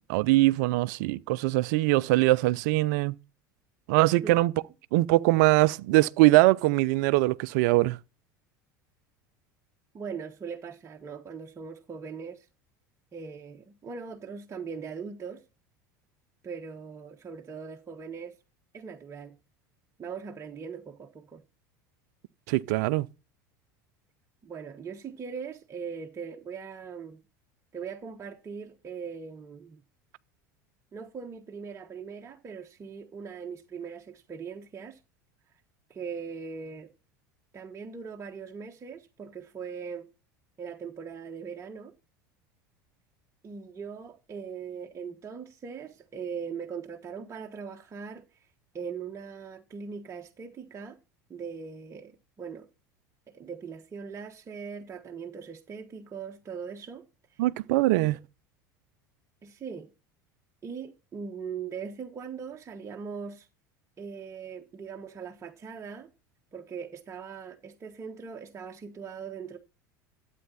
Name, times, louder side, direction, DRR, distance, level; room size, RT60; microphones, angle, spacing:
voice 1, 0.0-3.1 3.9-4.5 4.9-8.0 22.5-23.1 57.4-58.2, right 19 dB, 65° right, 0.5 m, -22 dB
voice 2, 9.9-12.5 13.1-15.4 16.4-18.4 18.7-19.4 20.0-21.4 24.4-27.2 27.7-29.8 30.9-35.0 35.9-36.9 37.5-40.1 40.6-41.9 43.4-48.5 48.7-51.0 51.3-52.7 53.3-57.0 57.3-57.4 58.0-58.2 59.4-59.9 60.6-63.5 64.0-66.1 66.5-69.6, right 6 dB, 30° right, 1.2 m, -40 dB
12.5 x 8.4 x 4.1 m
hypercardioid pair, 80°, 10 cm